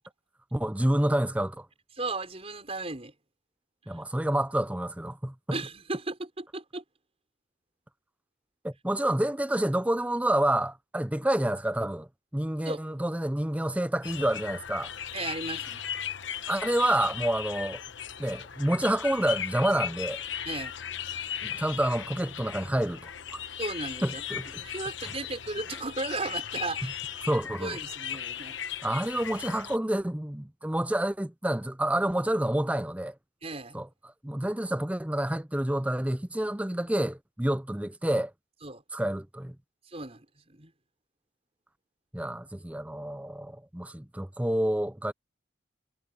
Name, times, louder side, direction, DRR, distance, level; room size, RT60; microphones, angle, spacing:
voice 1, 0.5-1.7 3.9-5.6 8.6-14.9 16.5-17.8 18.2-20.2 21.4-23.4 24.0-24.5 26.8-26.9 27.2-27.8 28.8-33.1 33.7-33.9 34.2-38.3 38.9-39.6 42.1-45.1, right 1 dB, 5° right, 0.6 m, -28 dB
voice 2, 2.0-3.1 5.5-6.8 12.7-12.9 15.1-15.8 20.5-20.7 23.6-24.2 24.6-27.0 27.6-28.6 33.4-33.8 38.6-38.8 39.9-40.7, right 3 dB, 30° right, 5.6 m, -35 dB
sound 1, 14.0-29.8, left 9 dB, 65° left, 1.1 m, -37 dB
head